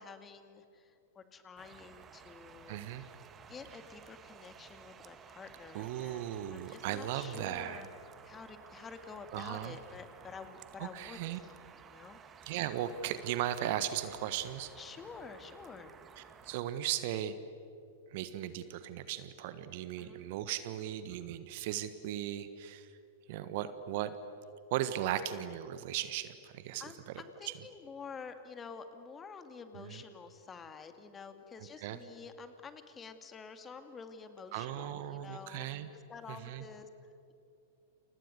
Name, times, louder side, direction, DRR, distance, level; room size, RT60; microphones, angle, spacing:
voice 1, 0.0-2.8 3.5-7.9 8.2-11.5 11.9-12.2 14.8-15.9 20.0-20.2 26.8-35.6 35.9-36.9, left 5 dB, 20° left, 8 dB, 2.2 m, -49 dB
sound 1, 1.6-16.6, right 7 dB, 25° right, 1.6 m, -55 dB
voice 2, 2.7-3.1 5.7-7.9 9.3-9.8 10.8-11.4 12.4-14.7 16.2-17.4 18.1-22.9 23.3-24.2 24.7-26.8 27.4-27.6 29.7-30.0 31.8-32.0 34.5-35.9 36.3-36.6, right 12 dB, 50° right, 12 dB, 1.4 m, -37 dB
29.5 x 29.0 x 6.8 m, 2.6 s
figure-of-eight pair, 95°, 0 cm